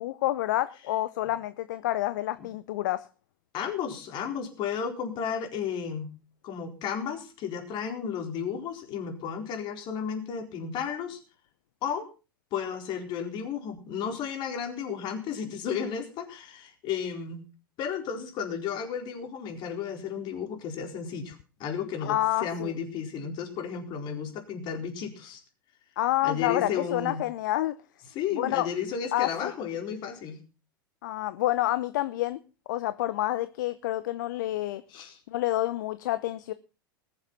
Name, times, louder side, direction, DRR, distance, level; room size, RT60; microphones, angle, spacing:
voice 1, 0.0-3.1 22.0-22.7 26.0-27.8 28.4-28.7 29.1-29.5 31.0-32.4 32.7-34.8 35.3-36.5, left 15 dB, 55° left, 0.7 m, -28 dB
voice 2, 3.5-6.1 6.4-11.2 11.8-12.1 12.5-17.4 17.8-25.4 26.2-27.2 28.1-30.4 34.9-35.2, left 7 dB, 40° left, 4.2 m, -33 dB
20.0 x 7.5 x 5.9 m
figure-of-eight pair, 90°, 12 cm